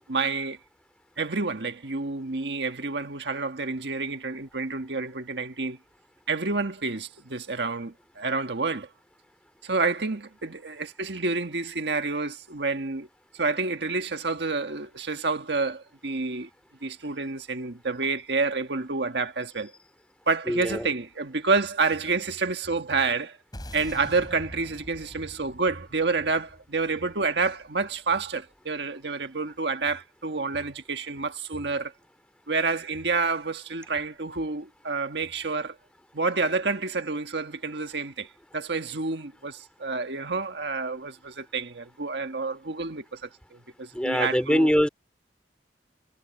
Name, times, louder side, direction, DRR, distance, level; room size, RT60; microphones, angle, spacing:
voice 1, 0.1-0.6 1.2-5.8 6.3-8.9 9.6-13.1 13.3-16.5 16.8-19.7 20.3-23.4 23.7-31.9 32.5-35.8 36.1-44.7, right 4 dB, 70° right, 1.6 m, -29 dB
voice 2, 20.5-20.9 43.9-44.9, equal, 5° left, 2.6 m, -23 dB
sound 1, 23.5-28.0, left 1 dB, 25° left, 6.9 m, -45 dB
head